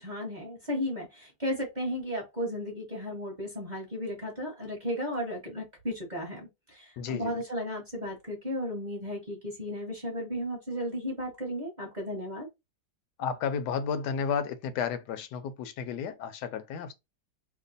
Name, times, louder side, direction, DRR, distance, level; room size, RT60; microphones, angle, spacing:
voice 1, 0.0-12.5, equal, 30° right, 1.0 m, -34 dB
voice 2, 7.0-7.3 13.2-16.9, left 6 dB, 75° left, 1.2 m, -32 dB
3.0 x 2.2 x 3.9 m
omnidirectional pair, 1.9 m